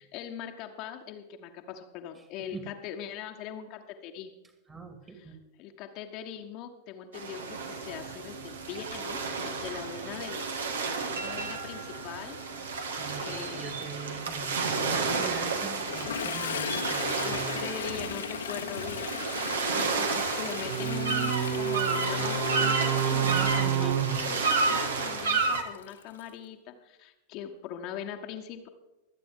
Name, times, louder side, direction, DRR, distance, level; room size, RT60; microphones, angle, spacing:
voice 1, 0.0-4.3 5.1-10.5 11.1-12.4 13.2-13.6 17.2-28.7, left 8 dB, 40° left, 4 dB, 1.2 m, -41 dB
voice 2, 4.7-5.4 13.0-17.7 23.2-24.0, right 5 dB, 15° right, 7 dB, 2.3 m, -41 dB
sound 1, 7.1-25.6, right 5 dB, 65° right, 1.6 m, -30 dB
Toilet flush, 15.7-26.3, left 8 dB, 65° left, 1.1 m, -38 dB
23.5 x 9.0 x 3.7 m, 1.1 s
figure-of-eight pair, 90°, 0 cm